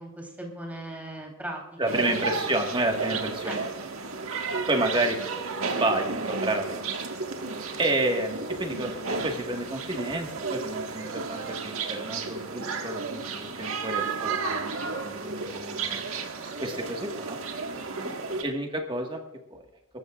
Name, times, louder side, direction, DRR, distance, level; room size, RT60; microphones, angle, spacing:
voice 1, 0.0-2.6 3.4-3.6 17.9-18.2, right 1 dB, 10° right, 0 dB, 3.5 m, -39 dB
voice 2, 1.8-3.6 4.7-5.2 5.6-6.8 7.8-16.0 16.6-17.4 18.4-19.2 19.5-19.6, right 2 dB, 25° right, 2 dB, 1.7 m, -30 dB
sound 1, 1.9-18.4, right 4 dB, 85° right, 1.7 m, -33 dB
25.0 x 14.0 x 2.5 m, 0.93 s
head